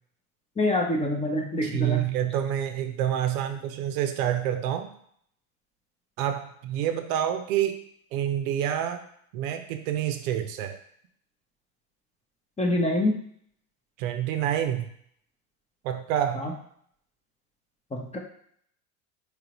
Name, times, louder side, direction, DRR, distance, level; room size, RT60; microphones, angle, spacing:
voice 1, 0.6-2.0 12.6-13.2 16.3-16.5 17.9-18.2, left 1 dB, 15° left, 1 dB, 0.7 m, -26 dB
voice 2, 1.7-4.9 6.2-7.8 8.1-9.0 9.3-10.8 14.0-14.9 15.8-16.5, right 10 dB, 70° right, 7 dB, 0.6 m, -27 dB
3.7 x 3.2 x 3.0 m, 0.65 s
hypercardioid pair, 80°, 43 cm